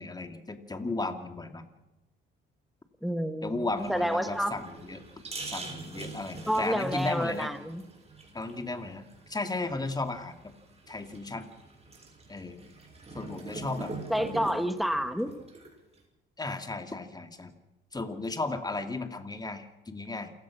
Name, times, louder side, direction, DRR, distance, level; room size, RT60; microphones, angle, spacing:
voice 1, 0.0-1.7 3.4-5.0 5.4-7.5 8.3-9.0 9.3-10.4 10.9-11.5 12.3-12.6 13.1-13.9 16.4-17.5 17.9-20.3, left 2 dB, 20° left, 7 dB, 2.6 m, -35 dB
voice 2, 3.0-4.5 6.5-7.8 14.1-15.3, equal, ahead, 8 dB, 2.0 m, -29 dB
sound 1, 3.8-16.0, right 3 dB, 30° right, 6.3 m, -44 dB
28.0 x 16.0 x 6.3 m, 0.99 s
cardioid pair, 90°, 20 cm